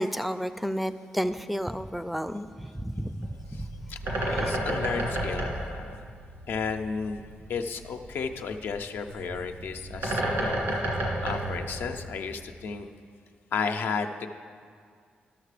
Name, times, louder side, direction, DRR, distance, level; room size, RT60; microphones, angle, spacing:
voice 1, 0.0-3.7 4.3-4.5, equal, ahead, 12 dB, 0.4 m, -32 dB
Bird, 3.2-12.4, right 1 dB, 85° right, 2.6 m, -32 dB
voice 2, 3.9-6.0 6.5-7.2 7.5-10.7 11.2-12.9 13.5-14.3, left 5 dB, 75° left, 5 dB, 0.5 m, -33 dB
12.0 x 6.6 x 4.9 m, 2.1 s
cardioid pair, 75°, 4 cm